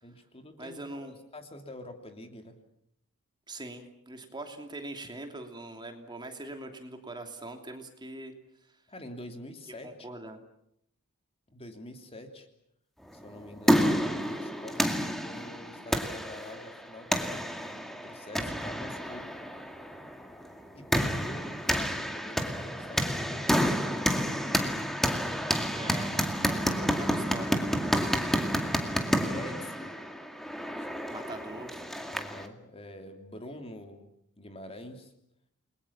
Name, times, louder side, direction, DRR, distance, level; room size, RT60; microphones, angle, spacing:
voice 1, 0.0-2.6 8.9-10.1 11.5-12.5 13.1-19.3 20.7-24.7 28.1-29.9 30.8-30.9 32.1-34.1 34.4-35.1, left 1 dB, 25° left, 5 dB, 2.9 m, -46 dB
voice 2, 0.6-1.1 3.5-8.4 9.8-10.4 25.6-27.7 31.1-31.7, right 2 dB, 20° right, 5 dB, 2.9 m, -42 dB
sound 1, 13.2-32.5, equal, ahead, 2.1 m, -30 dB
29.5 x 22.0 x 7.3 m, 0.74 s
head